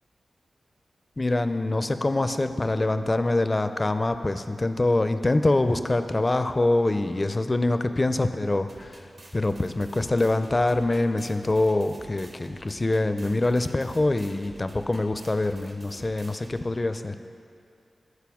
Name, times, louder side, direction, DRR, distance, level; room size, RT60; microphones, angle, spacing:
voice 1, 1.2-9.0 9.3-17.1, left 2 dB, 35° left, 10 dB, 0.4 m, -24 dB
sound 1, 8.7-16.7, right 2 dB, 65° right, 1.0 m, -49 dB
13.0 x 4.6 x 3.6 m, 2.5 s
cardioid pair, 45°, 0 cm